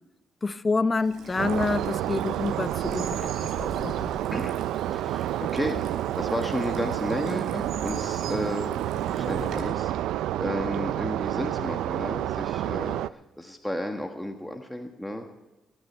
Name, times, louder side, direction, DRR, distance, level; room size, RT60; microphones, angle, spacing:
voice 1, 0.4-4.1, left 3 dB, 30° left, 0.7 m, -28 dB
Bird vocalization bird call bird song / Stream, 1.0-9.6, right 4 dB, 65° right, 4.3 m, -41 dB
wind steady distant forest roar air tone active, 1.4-13.1, right 13 dB, 85° right, 0.4 m, -29 dB
voice 2, 4.9-8.8 9.1-15.3, equal, 5° left, 1.4 m, -33 dB
21.0 x 9.8 x 4.4 m
cardioid pair, 90°, 0 cm